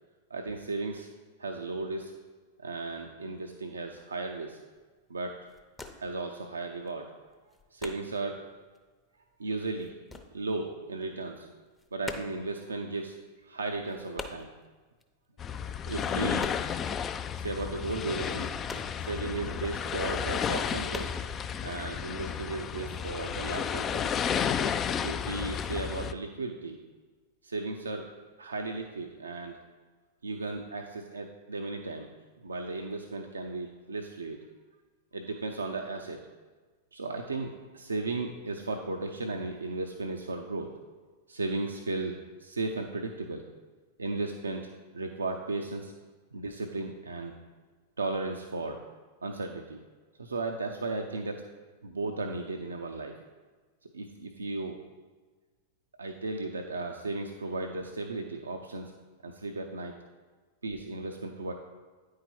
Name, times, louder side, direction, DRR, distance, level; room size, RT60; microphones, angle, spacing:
voice 1, 0.3-1.1 1.4-2.1 2.6-4.6 5.1-5.4 6.0-7.3 7.7-8.5 9.4-10.0 10.3-11.5 11.9-14.5 15.6-16.6 17.3-18.5 19.0-21.2 21.6-24.2 25.0-26.8 27.4-28.1 28.4-29.6 30.2-32.1 32.4-34.4 35.1-36.2 36.9-40.7 41.3-43.4 44.0-45.9 46.3-47.4 48.0-48.8 49.2-49.8 50.2-51.4 51.8-53.2 53.9-54.8 56.0-58.9 59.2-59.9 60.6-61.5, right 3 dB, 80° right, 3 dB, 0.5 m, -35 dB
sound 1, 4.0-4.2 4.7-5.0 5.3-6.3 6.5-8.4 8.7-11.0 11.2-17.0 17.2-17.3 17.7-19.7 20.0-20.1 20.5-21.2, left 2 dB, 10° left, 0.7 m, -44 dB
sound 2, 15.4-26.1, left 7 dB, 30° left, 0.3 m, -32 dB
9.4 x 4.7 x 4.4 m, 1.3 s
figure-of-eight pair, 95°, 0 cm